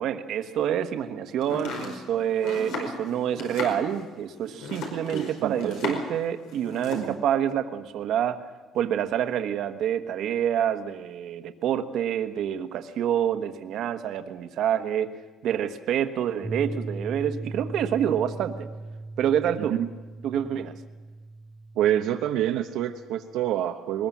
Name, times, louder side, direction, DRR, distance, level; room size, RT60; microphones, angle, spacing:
voice 1, 0.0-8.4 8.7-15.1 15.4-18.7 19.2-19.8 20.2-20.7, right 9 dB, 65° right, 8 dB, 1.3 m, -27 dB
Domestic sounds home sounds, 1.4-6.2 6.5-7.1, left 3 dB, 90° left, 5.1 m, -35 dB
voice 2, 5.1-6.0 6.9-7.2 19.6-19.9 21.8-24.1, right 11 dB, 85° right, 4 dB, 0.8 m, -27 dB
sound 1, 16.4-23.5, right 2 dB, ahead, 0.7 m, -39 dB
21.5 x 20.0 x 7.4 m, 1.3 s
cardioid pair, 160°, 0 cm